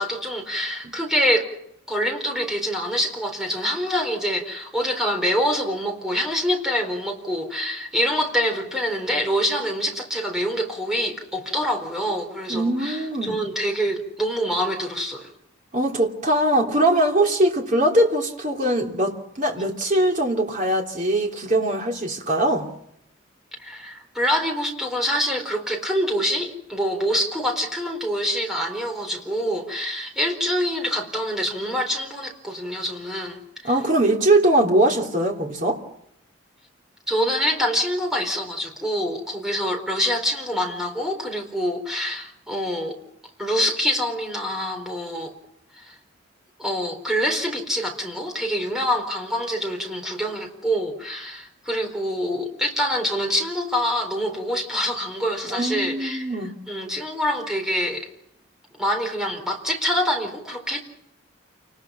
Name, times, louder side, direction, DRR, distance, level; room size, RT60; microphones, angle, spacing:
voice 1, 0.0-1.5 1.9-15.3 23.6-33.7 37.1-43.0 43.4-45.3 45.7-46.0 46.6-56.3 56.7-58.1 58.8-60.8, equal, ahead, 4.2 m, -25 dB
voice 2, 12.5-13.4 15.7-22.7 33.6-35.8 55.5-56.5, right 1 dB, 40° right, 3.2 m, -21 dB
28.5 x 20.5 x 5.8 m
head